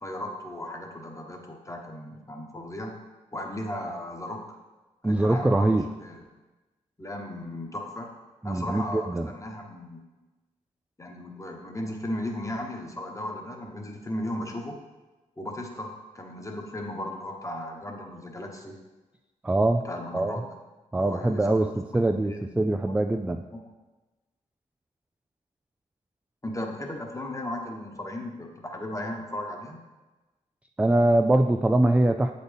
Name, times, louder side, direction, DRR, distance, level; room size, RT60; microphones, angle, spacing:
voice 1, 0.0-3.0 3.3-4.6 5.0-6.2 7.0-8.1 8.4-10.0 11.0-14.7 15.4-18.7 19.8-20.5 21.0-23.0 23.5-23.6 26.4-29.8, left 1 dB, 20° left, 2 dB, 1.2 m, -36 dB
voice 2, 5.0-5.8 8.4-9.3 19.4-19.8 20.1-20.4 20.9-23.4 30.8-32.3, right 2 dB, 10° right, 5 dB, 0.3 m, -23 dB
7.9 x 4.2 x 3.4 m, 1.2 s
cardioid pair, 50°, 14 cm